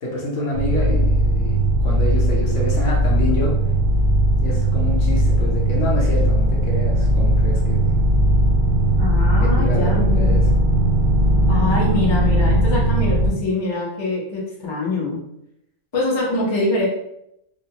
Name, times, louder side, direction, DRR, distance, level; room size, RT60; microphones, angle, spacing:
voice 1, 0.0-3.6 4.4-8.0 9.4-10.5, left 1 dB, 65° left, -3 dB, 0.9 m, -27 dB
sound 1, 0.5-13.3, right 1 dB, 55° right, 0.8 m, -18 dB
voice 2, 9.0-10.4 11.5-15.2 15.9-16.9, left 2 dB, 30° left, -5 dB, 0.5 m, -24 dB
2.4 x 2.3 x 2.7 m, 0.79 s
omnidirectional pair, 1.5 m